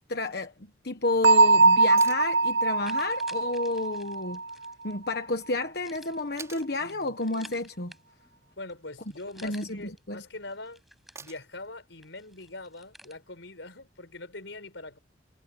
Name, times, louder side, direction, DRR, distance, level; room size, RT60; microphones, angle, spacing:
voice 1, 0.1-0.5 0.8-4.4 4.8-7.9 9.4-10.2, left 2 dB, 55° left, 1.3 m, -31 dB
Bell, 1.2-4.9, right 3 dB, 70° right, 0.7 m, -22 dB
sound 1, 2.0-2.3 4.5-4.6 6.4-6.7 8.7-9.2 11.2-11.6 13.8-13.9, right 4 dB, 15° right, 5.1 m, -45 dB
tree bark stepping cracking, 2.5-4.9 5.8-8.4 8.7-8.8 9.0-10.0 10.4-11.7 12.0-13.2, equal, ahead, 6.7 m, -52 dB
voice 2, 6.8-7.1 8.6-10.8 11.2-15.0, left 2 dB, 85° left, 5.1 m, -42 dB
head